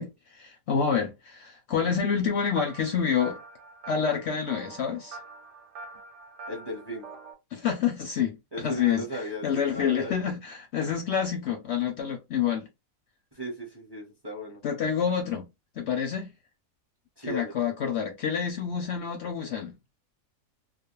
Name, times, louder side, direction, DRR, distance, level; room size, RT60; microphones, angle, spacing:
voice 1, 0.0-3.4 3.9-5.2 7.5-12.7 14.6-15.5 15.8-16.3 17.3-19.8, left 7 dB, 65° left, 0.7 m, -28 dB
sound 1, 2.6-7.3, right 3 dB, 65° right, 0.8 m, -45 dB
voice 2, 6.5-7.0 8.5-10.2 13.3-14.6 17.2-17.5, right 1 dB, 25° right, 0.7 m, -36 dB
2.4 x 2.0 x 2.9 m
omnidirectional pair, 1.4 m